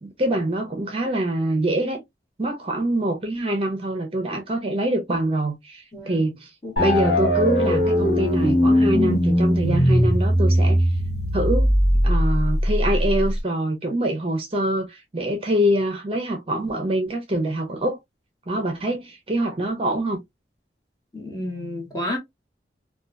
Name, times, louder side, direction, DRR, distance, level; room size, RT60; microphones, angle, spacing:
voice 1, 0.0-2.0 2.4-6.5 6.8-10.9 11.3-11.7 12.0-18.0 18.5-20.2, right 1 dB, 30° right, 0.6 m, -24 dB
sound 1, 6.8-13.4, equal, 70° left, 0.8 m, -19 dB
voice 2, 21.1-22.2, left 1 dB, 20° left, 1.1 m, -30 dB
2.7 x 2.3 x 2.4 m
head